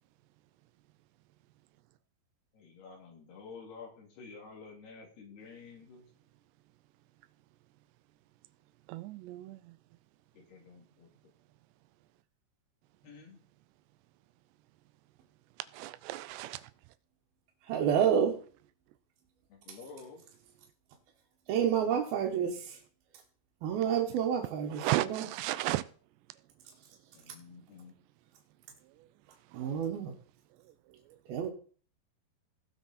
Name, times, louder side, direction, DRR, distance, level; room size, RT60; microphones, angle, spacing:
voice 1, 2.5-6.0 10.4-11.1 13.0-13.4 19.5-20.2 27.1-27.9, left 5 dB, 70° left, 4.6 m, -50 dB
voice 2, 8.9-9.6 15.7-16.6 24.8-25.8, right 16 dB, 85° right, 2.8 m, -33 dB
voice 3, 17.7-18.4 21.5-22.8 23.6-25.3 29.5-30.1 31.3-31.5, right 8 dB, 70° right, 3.0 m, -29 dB
18.0 x 6.2 x 4.2 m
omnidirectional pair, 4.9 m